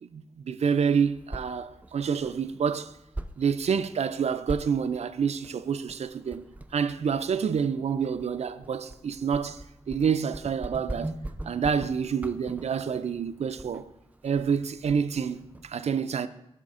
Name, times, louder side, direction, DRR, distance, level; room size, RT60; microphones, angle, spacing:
voice 1, 0.0-3.0 3.4-6.4 6.7-11.2 11.4-13.9 14.2-16.3, right 6 dB, 80° right, 0.4 m, -28 dB
sound 1, 0.9-15.7, right 1 dB, 15° right, 0.4 m, -43 dB
9.0 x 6.1 x 3.7 m
wide cardioid pair, 70°, 11 cm